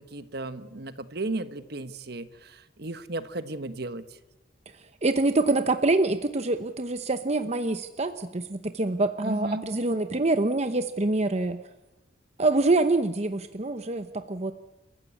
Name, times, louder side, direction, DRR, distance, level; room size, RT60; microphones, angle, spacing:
voice 1, 0.0-4.0 9.2-9.6, right 2 dB, 60° right, 12 dB, 1.3 m, -34 dB
voice 2, 5.0-11.6 12.4-14.5, right 2 dB, 40° right, 9 dB, 0.9 m, -25 dB
29.5 x 14.5 x 8.7 m, 0.98 s
head